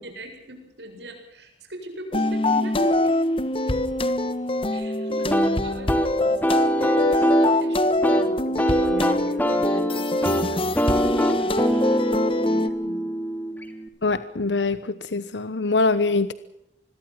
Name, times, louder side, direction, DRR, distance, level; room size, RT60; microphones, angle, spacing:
voice 1, 0.0-3.2 4.7-11.5 12.4-13.1, right 1 dB, 75° right, 5 dB, 7.7 m, -40 dB
sound 1, 2.1-12.7, left 1 dB, 30° left, 1.6 m, -24 dB
sound 2, 5.3-13.9, equal, 10° left, 2.9 m, -24 dB
voice 2, 14.0-16.3, left 3 dB, 85° left, 14 dB, 1.0 m, -23 dB
26.0 x 21.5 x 5.9 m, 0.82 s
head